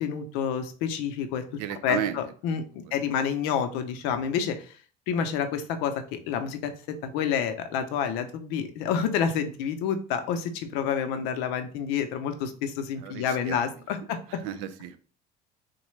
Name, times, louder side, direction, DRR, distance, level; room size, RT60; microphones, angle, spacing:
voice 1, 0.0-1.4 1.8-4.7 5.1-14.4, left 7 dB, 80° left, 0.6 m, -29 dB
voice 2, 1.5-2.2 2.5-2.6 13.0-13.7 14.0-15.0, right 10 dB, 90° right, 0.5 m, -34 dB
3.9 x 2.2 x 3.1 m
cardioid pair, 155°, 17 cm